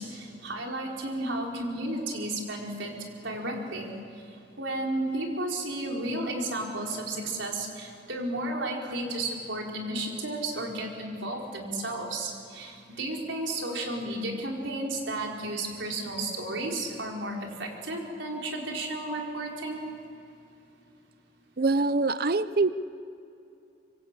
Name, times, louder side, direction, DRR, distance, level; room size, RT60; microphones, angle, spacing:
voice 1, 0.0-2.9 3.2-3.9 4.6-19.9, right 1 dB, 85° right, 0 dB, 4.8 m, -33 dB
voice 2, 21.6-22.7, right 3 dB, 50° right, 14 dB, 0.7 m, -24 dB
26.0 x 24.5 x 8.3 m, 2.6 s
head